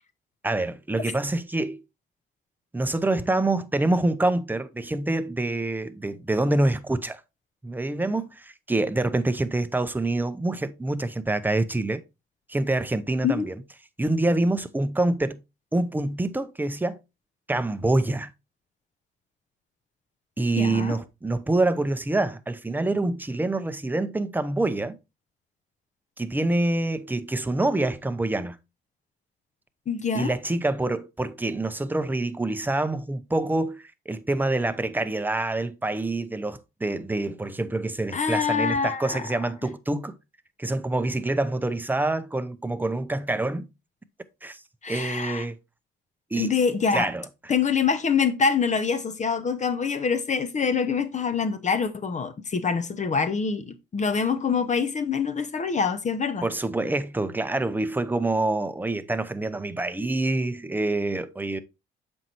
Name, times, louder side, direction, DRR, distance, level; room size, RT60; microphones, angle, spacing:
voice 1, 0.4-1.8 2.7-7.2 7.6-12.0 12.5-13.5 14.0-15.4 15.7-17.0 17.5-18.3 20.4-25.0 26.2-28.6 30.1-40.2 40.6-43.7 44.4-44.6 44.9-45.6 46.3-46.5 46.9-47.3 56.4-61.6, right 2 dB, 10° right, 0.6 m, -26 dB
voice 2, 20.6-21.0 29.9-30.3 38.1-39.3 44.8-45.5 46.4-47.1 47.5-56.5, left 5 dB, 35° left, 0.7 m, -25 dB
7.4 x 5.3 x 2.9 m
cardioid pair, 90°, 20 cm